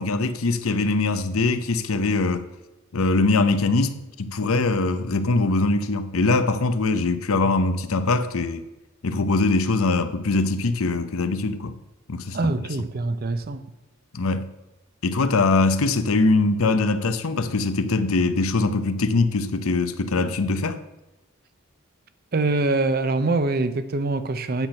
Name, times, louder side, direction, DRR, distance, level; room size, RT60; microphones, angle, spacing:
voice 1, 0.0-2.5 2.9-8.6 9.0-11.8 12.1-12.5 14.1-14.5 15.0-20.8, left 3 dB, 85° left, 0.7 m, -22 dB
voice 2, 12.3-13.6 22.3-24.7, right 2 dB, 45° right, 0.6 m, -24 dB
9.1 x 6.0 x 5.7 m
head